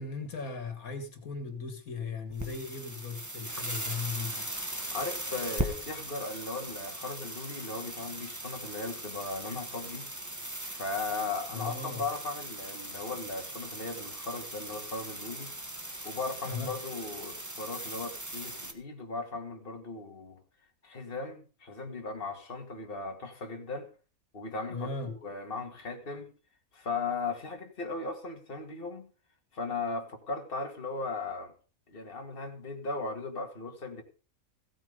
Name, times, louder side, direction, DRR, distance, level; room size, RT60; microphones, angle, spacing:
voice 1, 0.0-4.5 11.5-12.0 16.4-16.7 24.7-25.1, left 4 dB, 80° left, 2.3 m, -37 dB
sound 1, 2.3-18.7, right 1 dB, 15° right, 1.6 m, -39 dB
voice 2, 4.9-10.1 10.7-15.5 16.0-20.4 20.8-23.9 24.3-26.3 26.7-29.1 29.5-31.5 31.9-34.0, left 3 dB, 40° left, 2.2 m, -37 dB
16.0 x 8.8 x 5.2 m
omnidirectional pair, 1.5 m